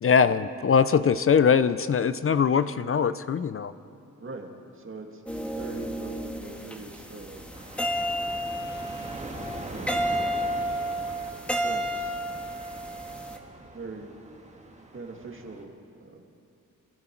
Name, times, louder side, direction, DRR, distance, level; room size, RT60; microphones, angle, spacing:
voice 1, 0.0-3.7, left 6 dB, 40° left, 14 dB, 0.5 m, -22 dB
voice 2, 4.7-7.5 9.7-10.1 11.6-12.2 13.6-14.1 14.9-15.7 16.0-16.2, right 3 dB, 40° right, 2 dB, 1.9 m, -42 dB
sound 1, 5.3-13.4, equal, 5° left, 1.5 m, -32 dB
sound 2, 7.5-15.6, right 2 dB, 20° right, 2.0 m, -42 dB
25.5 x 12.0 x 4.5 m, 2.5 s
cardioid pair, 80°, 33 cm